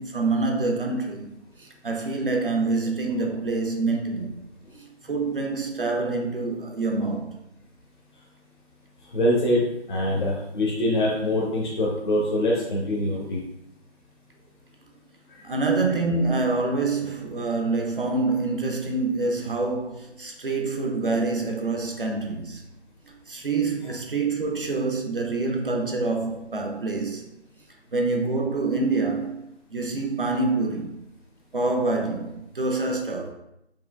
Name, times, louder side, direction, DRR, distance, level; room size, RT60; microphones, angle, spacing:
voice 1, 0.0-4.3 4.7-7.4 15.4-22.6 23.1-27.2 27.9-29.4 29.7-31.0 31.5-33.3, right 3 dB, 50° right, 0.5 m, -26 dB
voice 2, 9.1-9.6 9.9-13.4, left 1 dB, 45° left, 0.7 m, -24 dB
4.8 x 2.8 x 2.2 m
figure-of-eight pair, 165°, 35 cm